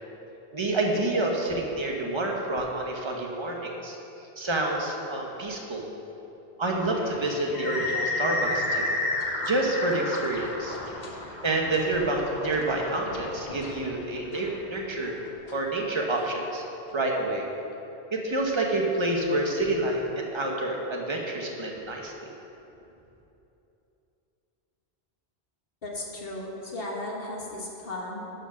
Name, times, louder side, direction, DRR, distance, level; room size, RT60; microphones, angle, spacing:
voice 1, 0.5-4.0 4.4-5.8 6.6-8.9 9.4-10.8 11.4-15.1 15.5-16.6 16.9-17.5 18.1-22.1, right 2 dB, 25° right, 0 dB, 1.1 m, -28 dB
sound 1, 6.9-16.2, left 2 dB, 45° left, 1.1 m, -32 dB
voice 2, 25.8-28.4, left 1 dB, 60° left, -2 dB, 1.6 m, -35 dB
11.5 x 5.1 x 6.2 m, 3.0 s
omnidirectional pair, 1.1 m